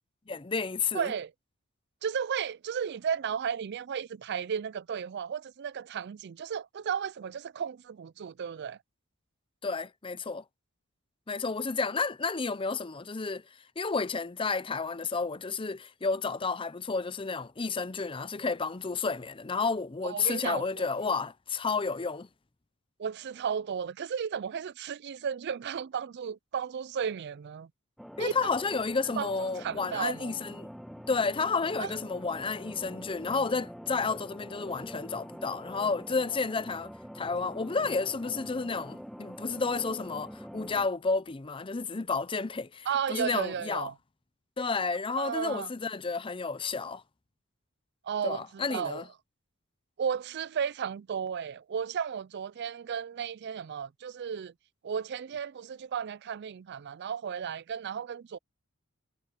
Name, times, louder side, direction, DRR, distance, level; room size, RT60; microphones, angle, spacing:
voice 1, 0.3-1.1 9.6-10.4 11.3-13.4 13.8-22.3 28.2-30.7 31.1-43.9 44.6-47.0 48.2-49.1, left 4 dB, 25° left, 0.6 m, -31 dB
voice 2, 0.9-1.3 2.0-8.8 20.0-20.7 23.0-27.7 28.2-28.3 29.2-29.3 29.6-30.3 31.8-31.9 42.9-43.9 45.2-45.7 48.0-49.0 50.0-54.5 54.8-58.4, right 7 dB, 50° right, 0.4 m, -34 dB
sound 1, 28.0-40.9, equal, ahead, 1.6 m, -45 dB
head